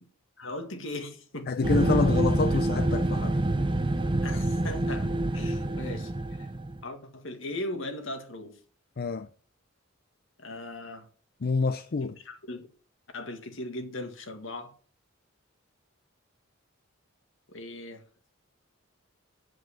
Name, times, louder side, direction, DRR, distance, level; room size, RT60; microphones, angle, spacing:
voice 1, 0.4-1.5 4.2-6.5 6.8-8.6 10.4-11.1 12.0-12.7 13.1-14.7 17.5-18.0, left 1 dB, 70° left, 1.9 m, -38 dB
voice 2, 1.5-3.4 9.0-9.3 11.4-12.1, left 4 dB, 50° left, 0.5 m, -27 dB
sound 1, 1.6-6.8, right 1 dB, 25° right, 0.7 m, -27 dB
7.9 x 7.7 x 7.4 m
head